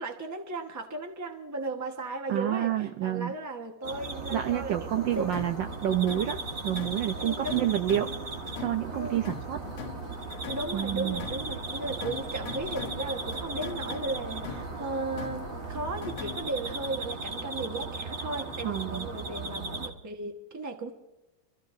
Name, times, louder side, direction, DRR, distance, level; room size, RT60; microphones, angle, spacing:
voice 1, 0.0-5.3 7.2-7.7 8.9-9.2 10.4-20.9, right 2 dB, 15° right, 4 dB, 0.7 m, -36 dB
voice 2, 2.3-3.3 4.3-8.1 8.6-9.6 10.7-11.3 18.6-19.1, right 11 dB, 70° right, 7 dB, 1.2 m, -29 dB
sound 1, 3.8-19.9, right 3 dB, 40° right, 1.7 m, -37 dB
sound 2, 5.1-16.6, left 6 dB, 65° left, 1.5 m, -43 dB
26.5 x 14.0 x 2.6 m, 1.0 s
omnidirectional pair, 2.4 m